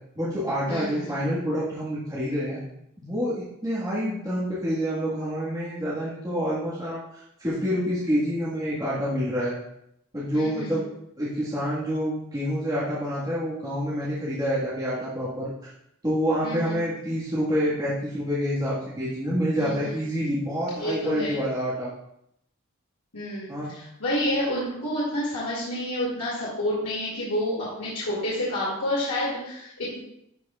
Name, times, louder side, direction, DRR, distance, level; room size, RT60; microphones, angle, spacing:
voice 1, 0.1-2.6 3.0-9.5 10.1-10.8 11.2-15.5 16.0-21.9 23.5-23.7, equal, 15° right, -10 dB, 1.6 m, -27 dB
voice 2, 0.7-1.2 10.3-10.8 16.4-16.7 19.6-19.9 20.8-21.4 23.1-30.0, left 1 dB, 85° left, -8 dB, 2.4 m, -29 dB
12.0 x 4.8 x 2.4 m, 0.78 s
head